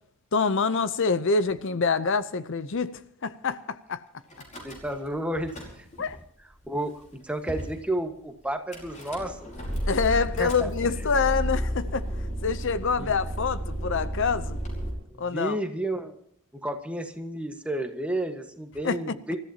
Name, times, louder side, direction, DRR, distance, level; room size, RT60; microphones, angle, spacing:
voice 1, 0.3-4.0 6.0-6.2 9.9-12.0 12.4-14.6 15.2-15.6 18.8-19.0, left 5 dB, 60° left, 0.7 m, -26 dB
Car / Engine starting / Idling, 4.3-5.1 5.4-6.1 6.8-6.9 7.1-7.2 7.5-7.8 8.7-14.9, equal, 35° left, 5.0 m, -32 dB
voice 2, 4.6-5.9 6.7-9.5 10.4-10.7 13.0-13.1 15.1-16.2 16.5-19.4, right 1 dB, 5° right, 1.4 m, -31 dB
27.5 x 14.5 x 2.9 m
head